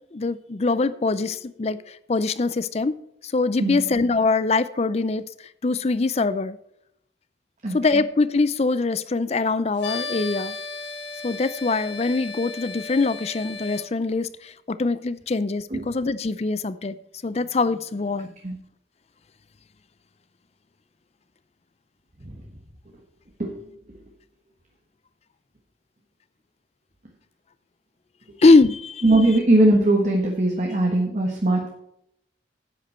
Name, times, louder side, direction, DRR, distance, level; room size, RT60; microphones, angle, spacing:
voice 1, 0.1-3.0 3.2-5.2 5.6-6.6 7.7-10.5 11.2-17.0 17.2-18.3 28.4-29.0, left 3 dB, 35° left, 0.5 m, -23 dB
sound 1, 9.8-13.9, left 4 dB, 75° left, 1.6 m, -35 dB
voice 2, 29.0-31.7, right 1 dB, 40° right, 1.4 m, -20 dB
10.5 x 8.6 x 4.4 m
head